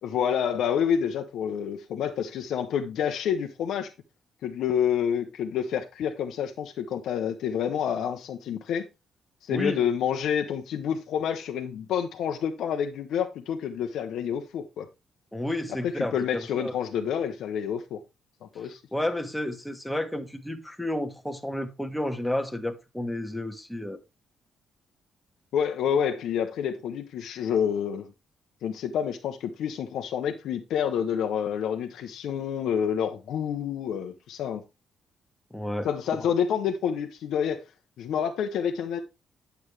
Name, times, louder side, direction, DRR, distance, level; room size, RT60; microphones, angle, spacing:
voice 1, 0.0-3.9 4.4-8.9 9.4-14.9 15.8-18.0 18.4-18.8 25.5-28.1 28.6-34.6 35.8-37.6 38.0-39.0, left 8 dB, 75° left, 0.8 m, -28 dB
voice 2, 9.5-9.8 15.3-16.8 18.6-24.0 35.5-35.9, left 1 dB, 5° left, 1.3 m, -31 dB
9.0 x 7.0 x 3.2 m
cardioid pair, 90°, 0 cm